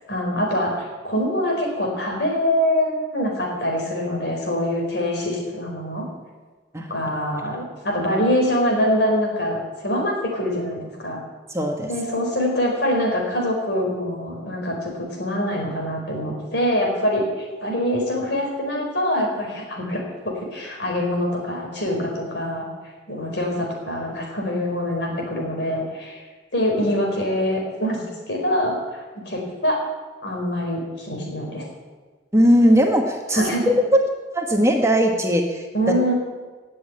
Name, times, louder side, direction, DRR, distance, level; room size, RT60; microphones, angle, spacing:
voice 1, 0.1-6.1 6.9-11.2 11.9-22.7 23.1-26.2 26.5-29.8 30.2-31.6 33.3-33.7 35.7-36.1, equal, 60° left, 0 dB, 4.5 m, -24 dB
voice 2, 11.5-11.9 32.3-33.7 34.3-35.6, equal, 15° right, 2 dB, 1.3 m, -18 dB
18.0 x 7.6 x 8.9 m, 1.3 s
head